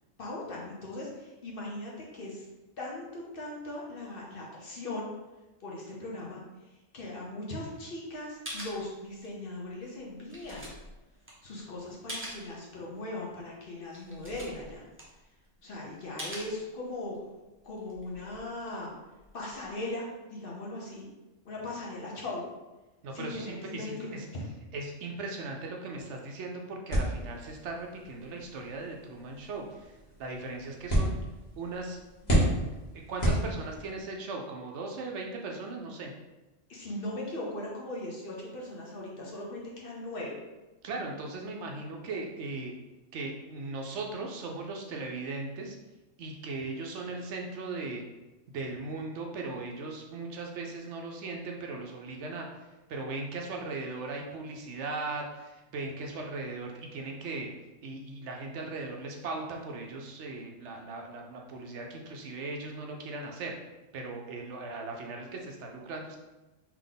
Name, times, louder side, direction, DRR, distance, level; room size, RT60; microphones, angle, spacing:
voice 1, 0.2-2.4 2.8-5.1 5.6-6.4 6.9-10.7 11.4-14.8 15.6-17.1 17.6-18.9 19.3-21.1 21.4-22.4 23.1-24.4 36.7-40.3, left 2 dB, 50° left, -3 dB, 0.9 m, -39 dB
sound 1, 8.2-8.3 8.4-9.5 9.8-12.5 13.0-13.1 13.5-13.6 13.8-15.6 16.2-17.1 17.6-19.8, equal, 15° right, 0.6 m, -44 dB
voice 2, 23.0-24.2 24.7-29.9 30.2-31.1 31.6-32.0 32.3-32.5 33.1-36.1 40.8-42.7 43.1-45.8 46.2-48.0 48.5-52.5 52.9-57.5 57.8-63.6 63.9-66.2, right 3 dB, 70° right, 1 dB, 0.8 m, -38 dB
sound 2, 26.9-34.0, right 1 dB, 35° left, 1.4 m, -32 dB
3.5 x 2.9 x 3.8 m, 1.1 s
omnidirectional pair, 1.3 m